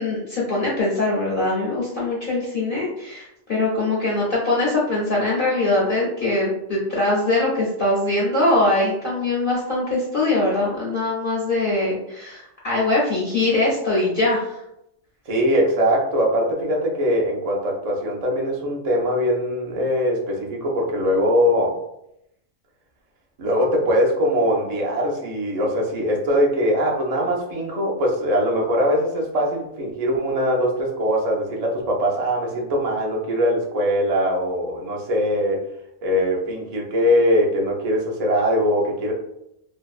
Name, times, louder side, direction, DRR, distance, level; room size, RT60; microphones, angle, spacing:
voice 1, 0.0-14.6, left 2 dB, 55° left, -5 dB, 0.6 m, -22 dB
voice 2, 15.3-21.8 23.4-35.6 36.0-39.1, equal, 50° right, -2 dB, 0.4 m, -21 dB
2.6 x 2.1 x 2.3 m, 0.79 s
omnidirectional pair, 1.3 m